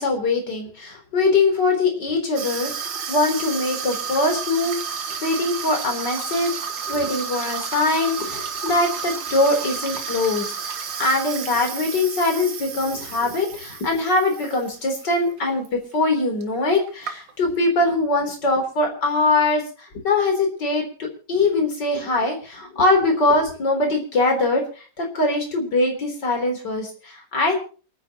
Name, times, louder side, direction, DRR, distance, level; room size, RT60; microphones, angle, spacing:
voice 1, 0.0-6.5 6.9-20.8 21.3-27.6, left 2 dB, 60° left, 3 dB, 4.4 m, -22 dB
Water tap faucet / Sink (filling or washing), 2.4-15.1 15.4-15.7 16.4-16.5 16.7-17.6, right 6 dB, 70° right, 2.1 m, -31 dB
28.5 x 10.0 x 3.0 m, 0.38 s
omnidirectional pair, 2.1 m